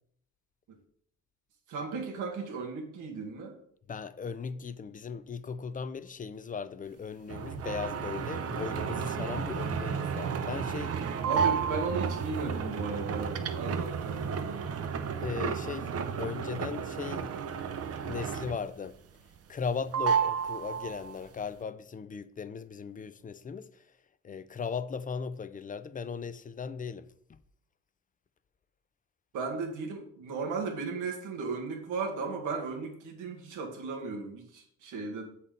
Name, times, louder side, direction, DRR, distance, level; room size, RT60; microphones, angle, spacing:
voice 1, 1.7-3.6 11.2-15.2 29.3-35.3, right 4 dB, 90° right, 1.6 m, -36 dB
voice 2, 3.9-11.0 15.2-15.9 16.2-17.3 18.0-19.0 19.5-23.7 24.2-27.4, left 6 dB, 25° left, 0.4 m, -37 dB
sound 1, 7.3-18.8 19.1-19.7 19.9-21.2, right 6 dB, 55° right, 0.7 m, -32 dB
7.2 x 4.2 x 5.1 m
cardioid pair, 90°, 30 cm